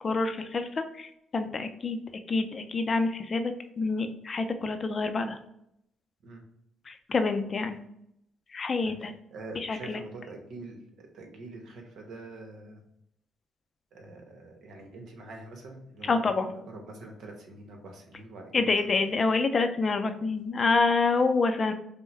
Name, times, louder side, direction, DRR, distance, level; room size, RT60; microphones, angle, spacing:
voice 1, 0.0-2.0 2.3-5.4 6.9-7.8 8.5-9.1 9.6-10.0 16.0-16.5 18.5-21.7, left 3 dB, 40° left, 8 dB, 0.5 m, -27 dB
voice 2, 8.8-12.8 13.9-18.7, right 2 dB, 70° right, 2 dB, 1.1 m, -45 dB
5.4 x 2.2 x 3.3 m, 0.76 s
cardioid pair, 90°, 0 cm